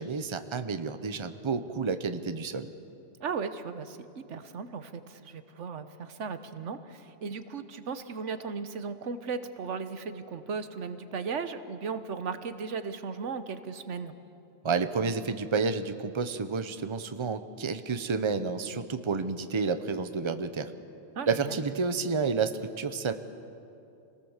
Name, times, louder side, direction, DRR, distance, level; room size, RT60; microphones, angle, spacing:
voice 1, 0.0-2.7 14.6-20.7 21.3-23.1, right 5 dB, 30° right, 10 dB, 0.8 m, -30 dB
voice 2, 3.2-14.1 21.1-21.6, right 5 dB, 90° right, 10 dB, 1.3 m, -36 dB
26.0 x 18.5 x 7.3 m, 2.7 s
omnidirectional pair, 1.2 m